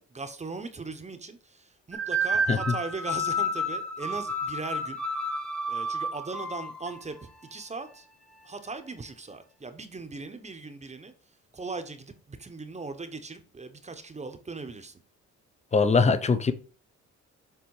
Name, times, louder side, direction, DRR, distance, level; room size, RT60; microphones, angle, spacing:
voice 1, 0.0-5.0 5.7-8.1 8.4-11.1 11.5-15.0, right 3 dB, 20° right, 0.9 m, -39 dB
sound 1, 1.9-7.0, equal, 5° left, 0.9 m, -30 dB
voice 2, 15.7-16.5, left 4 dB, 20° left, 0.6 m, -22 dB
7.1 x 3.4 x 4.7 m
cardioid pair, 90°, 30 cm